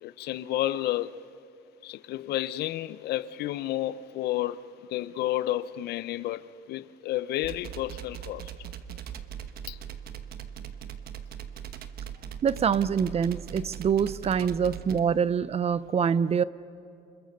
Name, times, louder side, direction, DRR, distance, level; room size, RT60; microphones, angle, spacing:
voice 1, 0.0-1.2 1.8-4.6 4.9-8.5 9.7-9.8, left 14 dB, 75° left, 0.7 m, -31 dB
sound 1, 7.4-15.0, right 9 dB, 65° right, 1.2 m, -40 dB
voice 2, 12.4-16.4, right 7 dB, 35° right, 0.6 m, -25 dB
29.0 x 26.0 x 6.7 m
cardioid pair, 110°, 17 cm